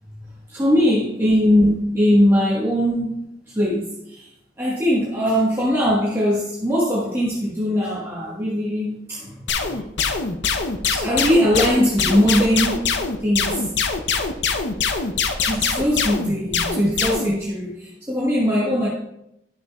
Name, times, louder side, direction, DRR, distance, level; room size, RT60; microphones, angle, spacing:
voice 1, 0.5-3.3 3.5-4.3 4.6-9.3 9.6-9.8 10.9-13.0 13.2-13.6 15.5-18.9, equal, 15° right, -6 dB, 1.2 m, -20 dB
sound 1, 9.5-17.3, left 5 dB, 75° left, 0.7 m, -23 dB
11.5 x 6.5 x 2.3 m, 0.82 s
head